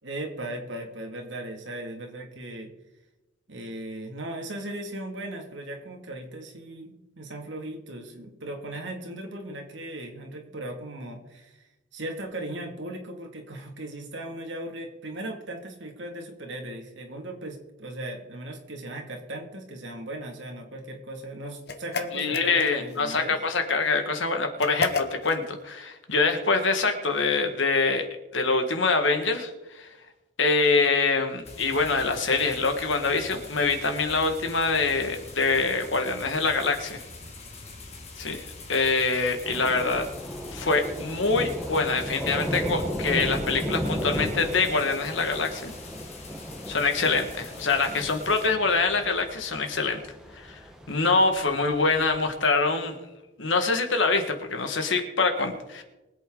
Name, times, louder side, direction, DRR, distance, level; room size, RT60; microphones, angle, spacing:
voice 1, 0.0-2.7 3.5-11.7 11.9-23.4 47.0-47.2, right 1 dB, 70° right, 2 dB, 2.3 m, -37 dB
sound 1, 21.7-23.0 24.6-25.4, left 3 dB, 55° left, 0.9 m, -32 dB
voice 2, 22.1-28.1 28.3-29.9 30.4-37.0 38.2-40.1 40.5-45.7 46.7-50.0 50.3-50.6 50.9-53.0 53.4-55.8, left 4 dB, 75° left, 6 dB, 1.7 m, -25 dB
Suburban Atmos sprinkler and birds, 31.4-48.5, left 3 dB, 35° left, 2.0 m, -44 dB
Thunder / Rain, 39.4-52.3, equal, 5° right, 1.2 m, -35 dB
23.0 x 8.3 x 3.9 m, 1.0 s
head